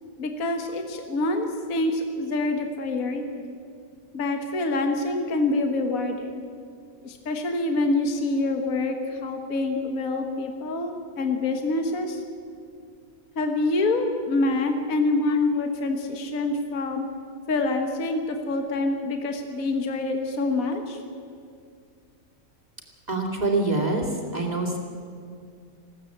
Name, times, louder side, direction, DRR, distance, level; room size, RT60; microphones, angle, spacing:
voice 1, 0.2-3.5 4.1-6.4 7.0-12.2 13.4-17.1 17.5-21.0, left 2 dB, 55° left, 5 dB, 1.7 m, -26 dB
voice 2, 23.1-24.8, right 2 dB, 25° right, 0 dB, 2.7 m, -25 dB
21.0 x 16.0 x 8.6 m, 2.3 s
omnidirectional pair, 1.8 m